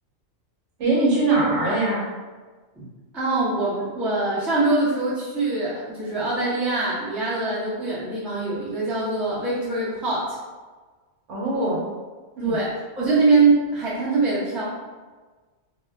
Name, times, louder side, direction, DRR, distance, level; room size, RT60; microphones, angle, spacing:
voice 1, 0.8-2.1 11.3-11.9 12.4-12.6, right 2 dB, 70° right, -4 dB, 1.0 m, -22 dB
voice 2, 3.1-10.4 11.5-11.8 12.4-12.7 13.0-14.6, right 3 dB, ahead, -8 dB, 0.3 m, -23 dB
2.2 x 2.0 x 3.4 m, 1.3 s
omnidirectional pair, 1.3 m